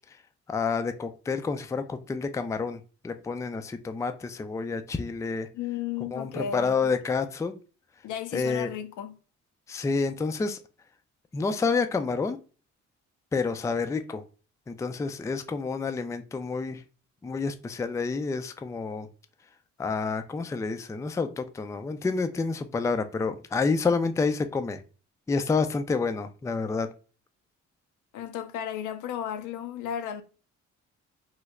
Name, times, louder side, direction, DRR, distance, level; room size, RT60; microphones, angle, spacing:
voice 1, 0.5-5.5 6.1-7.5 8.3-8.7 9.7-10.6 11.3-12.4 13.3-14.2 14.7-16.8 17.2-19.1 19.8-24.8 25.3-26.9, left 4 dB, 10° left, 0.3 m, -29 dB
voice 2, 5.5-6.9 8.0-9.2 28.1-30.2, left 9 dB, 80° left, 0.6 m, -34 dB
3.2 x 2.1 x 3.5 m
cardioid pair, 90°, 30 cm